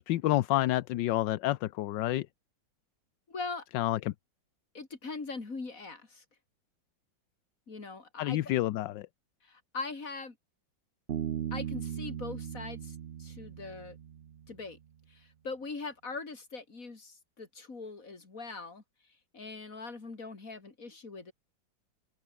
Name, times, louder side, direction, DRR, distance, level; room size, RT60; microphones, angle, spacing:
voice 1, 0.0-2.3 3.7-4.1 8.2-9.1, left 15 dB, 75° left, 1.4 m, -29 dB
voice 2, 3.3-3.7 4.7-6.2 7.7-8.4 9.4-10.4 11.5-14.0 14.5-14.8 15.1-18.8 19.3-21.3, left 3 dB, 45° left, 3.7 m, -41 dB
Bass guitar, 11.1-14.6, right 9 dB, 55° right, 0.7 m, -38 dB
omnidirectional pair, 2.0 m